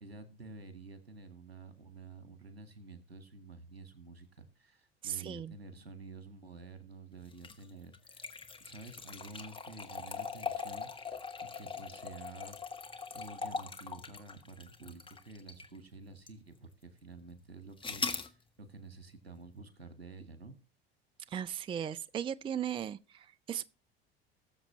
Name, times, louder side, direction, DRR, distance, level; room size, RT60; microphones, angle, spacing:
voice 1, 0.0-8.2 8.6-12.6 13.1-20.6, right 3 dB, 85° right, 1.8 m, -50 dB
voice 2, 5.0-5.5 21.3-23.6, right 9 dB, 15° right, 0.4 m, -37 dB
sound 1, 7.3-15.8 16.3-16.4 17.8-18.3, left 5 dB, 15° left, 1.5 m, -41 dB
19.0 x 7.2 x 3.1 m
figure-of-eight pair, 70°, 30 cm